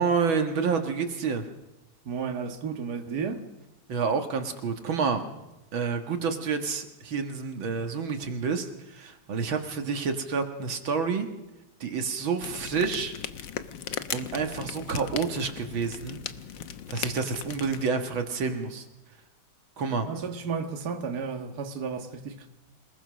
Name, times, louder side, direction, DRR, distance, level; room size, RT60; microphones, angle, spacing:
voice 1, 0.0-1.5 3.9-5.2 5.7-11.3 11.8-13.1 14.1-16.2 16.9-18.9 19.8-20.1, right 5 dB, 75° right, 2.5 m, -29 dB
voice 2, 2.1-3.4 20.1-22.5, right 5 dB, 50° right, 2.1 m, -33 dB
sound 1, 12.4-17.9, left 9 dB, 65° left, 1.6 m, -38 dB
27.5 x 19.0 x 6.3 m
omnidirectional pair, 2.2 m